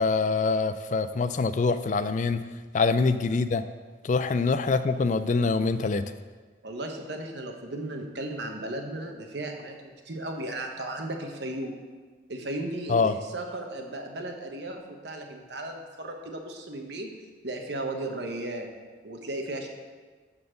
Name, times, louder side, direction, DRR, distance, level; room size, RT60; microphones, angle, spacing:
voice 1, 0.0-2.4 2.7-3.6 4.0-6.0 12.9-13.1, left 4 dB, 40° left, 12 dB, 0.3 m, -24 dB
voice 2, 6.6-11.7 12.3-17.2 17.4-18.7 19.0-19.7, right 1 dB, 60° right, 3 dB, 1.2 m, -35 dB
12.0 x 4.3 x 6.5 m, 1.4 s
head